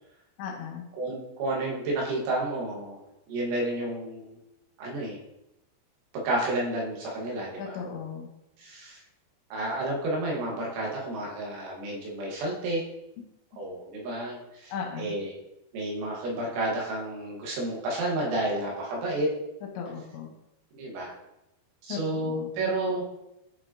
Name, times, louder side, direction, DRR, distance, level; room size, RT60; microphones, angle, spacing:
voice 1, 0.4-0.9 7.6-8.3 14.7-15.1 19.8-20.3 21.9-22.5, left 6 dB, 75° left, 0 dB, 3.2 m, -36 dB
voice 2, 1.0-3.0 3.3-4.4 4.8-5.2 6.1-7.8 8.6-9.0 9.5-12.8 13.6-15.3 15.7-19.3 20.7-21.1 21.8-23.1, right 1 dB, 90° right, -3 dB, 4.0 m, -31 dB
9.3 x 5.1 x 2.8 m, 0.88 s
omnidirectional pair, 5.3 m